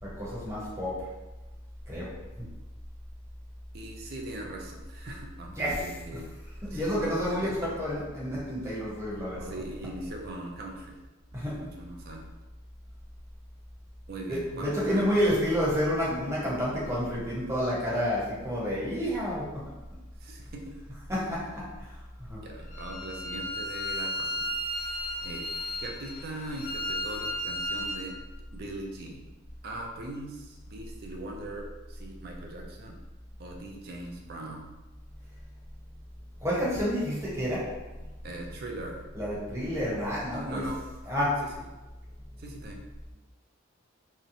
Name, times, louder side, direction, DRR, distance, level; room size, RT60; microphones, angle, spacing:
voice 1, 0.0-1.1 1.9-2.4 5.6-5.8 6.7-9.5 11.3-11.6 14.3-19.7 21.1-22.4 36.4-37.8 39.1-40.6 41.1-41.4, equal, 15° right, -7 dB, 0.7 m, -30 dB
voice 2, 3.7-6.3 6.7-7.5 8.5-8.8 9.4-11.0 11.3-12.3 14.1-15.1 20.2-20.8 22.4-24.5 25.2-25.5 25.8-28.2 28.5-29.4 29.6-33.0 33.4-34.6 38.2-39.0 40.3-40.8 42.4-42.8, right 1 dB, 45° right, 1 dB, 0.4 m, -40 dB
Bowed string instrument, 22.7-28.1, equal, 40° left, 0.3 m, -34 dB
2.7 x 2.1 x 2.5 m, 1.1 s
head